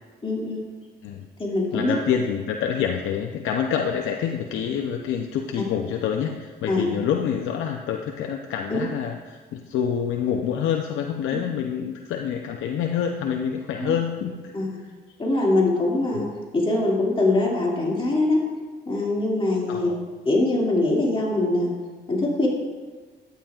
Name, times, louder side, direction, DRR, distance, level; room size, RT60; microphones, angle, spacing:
voice 1, 0.2-0.6 1.4-1.9 6.7-6.9 8.7-8.8 13.8-13.9 14.5-14.8 15.2-16.3 16.5-18.4 18.9-19.9 20.3-21.7 22.1-22.5, left 2 dB, 25° left, -3 dB, 2.3 m, -22 dB
voice 2, 1.7-14.5 16.1-16.3 19.7-20.0, left 8 dB, 80° left, 2 dB, 0.6 m, -27 dB
11.5 x 8.9 x 2.4 m, 1.4 s
cardioid pair, 90°, 20 cm